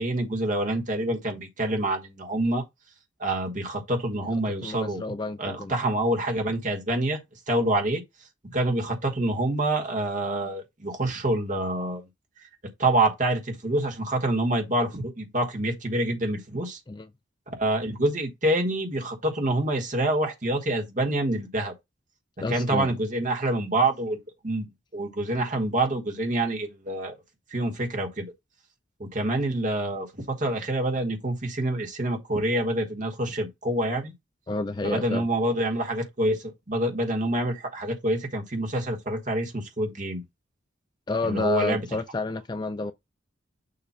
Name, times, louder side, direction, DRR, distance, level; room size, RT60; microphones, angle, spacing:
voice 1, 0.0-2.6 3.2-5.0 5.4-7.2 7.5-8.0 8.4-12.0 12.8-16.8 17.5-21.7 22.5-24.2 24.4-24.7 24.9-27.1 27.5-28.2 29.0-34.1 34.8-40.2 41.2-41.9, right 1 dB, 40° right, 1.4 m, -26 dB
voice 2, 4.6-5.7 16.9-17.1 22.4-22.9 34.5-35.3 41.1-42.9, left 3 dB, 20° left, 0.3 m, -29 dB
6.9 x 2.5 x 5.6 m
head